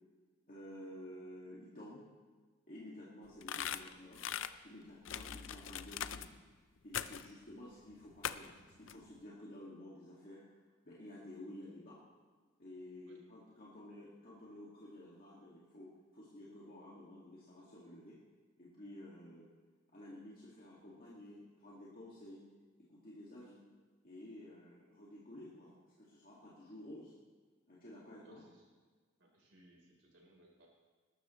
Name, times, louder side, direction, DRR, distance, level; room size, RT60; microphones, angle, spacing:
voice 1, 0.5-2.0 2.7-4.2 4.6-6.3 6.8-10.4 10.8-12.0 12.6-18.2 18.6-19.5 19.9-22.4 22.8-23.6 24.0-27.1 27.7-28.4, left 1 dB, 45° left, -6 dB, 2.2 m, -52 dB
sound 1, 3.4-4.5 5.0-6.3 6.9-7.3 8.2-8.6 8.9-9.0, left 9 dB, 65° left, 0.5 m, -40 dB
voice 2, 28.2-28.7 29.2-30.7, right 1 dB, 65° right, -1 dB, 4.0 m, -65 dB
20.5 x 12.5 x 3.2 m, 1.4 s
head